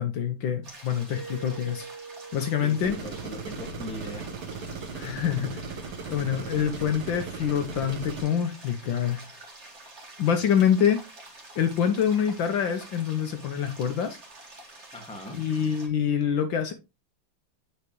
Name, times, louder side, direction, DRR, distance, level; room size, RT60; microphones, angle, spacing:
voice 1, 0.0-1.9 2.3-3.0 4.9-5.8 6.1-9.3 10.2-11.0 11.5-14.2 15.3-16.7, left 8 dB, 70° left, 1.4 m, -26 dB
sound 1, 0.6-15.9, right 2 dB, 35° right, 1.8 m, -48 dB
Mallet percussion, 1.1-5.7, right 4 dB, 30° left, 1.8 m, -46 dB
voice 2, 2.6-4.3 14.9-15.4, left 1 dB, 5° left, 1.3 m, -39 dB
sound 2, 2.8-8.2, right 4 dB, 85° right, 2.1 m, -37 dB
8.4 x 4.8 x 3.0 m
omnidirectional pair, 2.4 m